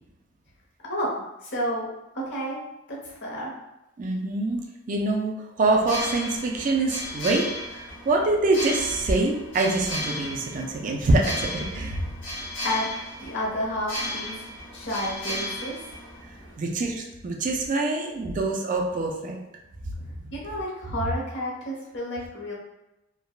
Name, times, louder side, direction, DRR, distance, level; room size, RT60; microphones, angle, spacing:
voice 1, 1.4-1.9 2.1-2.6 3.0-3.5 12.6-12.9 13.2-14.4 14.7-15.9 20.3-22.5, equal, 65° left, -4 dB, 0.9 m, -30 dB
voice 2, 4.0-12.0 16.6-19.4, right 2 dB, 40° right, 1 dB, 0.4 m, -25 dB
sound 1, 5.8-16.6, left 1 dB, 85° left, 1.5 m, -35 dB
3.4 x 2.2 x 2.3 m, 0.94 s
head